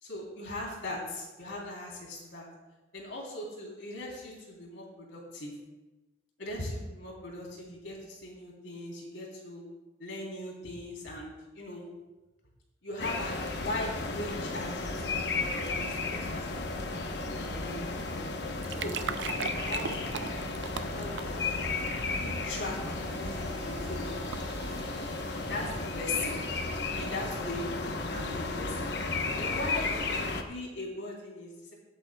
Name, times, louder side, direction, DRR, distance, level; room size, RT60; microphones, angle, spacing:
voice 1, 0.0-2.5 2.9-5.5 6.4-9.6 10.0-11.8 12.8-17.0 17.3-18.2 18.8-21.6 22.2-24.1 25.5-26.4 27.0-27.7 28.1-28.9 29.4-31.7, left 1 dB, 85° left, -2 dB, 3.5 m, -40 dB
sound 1, 13.0-30.4, left 3 dB, 60° left, 1.0 m, -34 dB
sound 2, 18.4-25.9, right 7 dB, 70° right, 0.5 m, -42 dB
22.0 x 8.7 x 2.3 m, 1.1 s
head